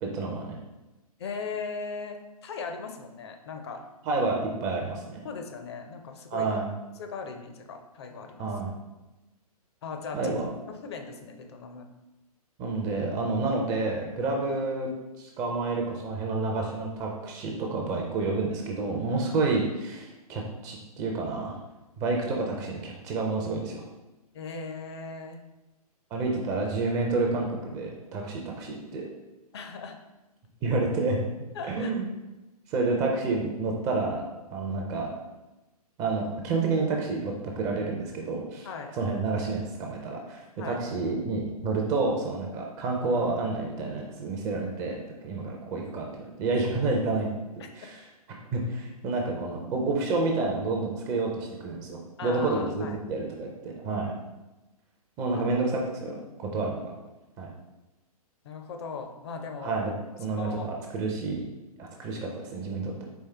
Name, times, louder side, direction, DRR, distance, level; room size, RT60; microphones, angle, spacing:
voice 1, 0.0-0.6 4.1-5.2 6.3-6.7 8.4-8.7 10.1-10.5 12.6-14.9 15.2-21.6 22.0-23.8 26.1-29.0 30.6-31.2 31.7-32.1 32.7-34.2 34.5-35.1 36.0-38.7 39.0-45.0 45.2-47.3 47.8-48.0 48.5-54.1 55.2-56.2 56.5-56.9 57.4-57.5 59.6-59.9 60.2-61.4 61.8-63.0, right 3 dB, 15° right, 0 dB, 0.4 m, -29 dB
voice 2, 1.2-3.8 5.2-6.5 7.0-8.5 9.8-10.3 10.7-11.9 24.3-25.4 29.5-30.0 31.5-31.9 38.6-38.9 40.6-40.8 47.6-47.7 52.2-53.0 55.3-55.4 58.4-59.8 60.3-60.7, left 4 dB, 45° left, 5 dB, 0.5 m, -38 dB
4.4 x 3.2 x 3.2 m, 1.0 s
figure-of-eight pair, 125°, 20 cm